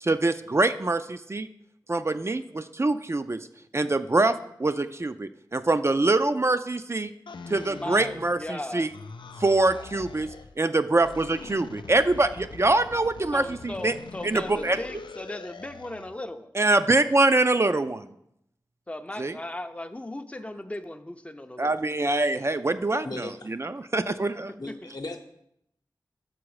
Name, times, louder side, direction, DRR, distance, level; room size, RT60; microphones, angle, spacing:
voice 1, 0.0-1.5 1.9-3.5 3.7-7.1 7.5-8.9 9.4-13.9 14.2-14.8 16.6-18.1 19.2-19.3 21.6-24.5, right 2 dB, 35° right, 10 dB, 0.4 m, -24 dB
sound 1, 7.3-8.6 8.9-10.5 11.0-16.2, left 4 dB, 85° left, 0.4 m, -43 dB
voice 2, 7.8-8.9 13.3-16.5 18.9-21.8 24.0-24.2 24.7-24.8, left 1 dB, 15° left, 9 dB, 0.5 m, -37 dB
voice 3, 23.0-23.6 24.6-25.2, left 2 dB, 55° left, 5 dB, 0.8 m, -37 dB
6.1 x 6.1 x 4.8 m, 0.77 s
wide cardioid pair, 45°, 8 cm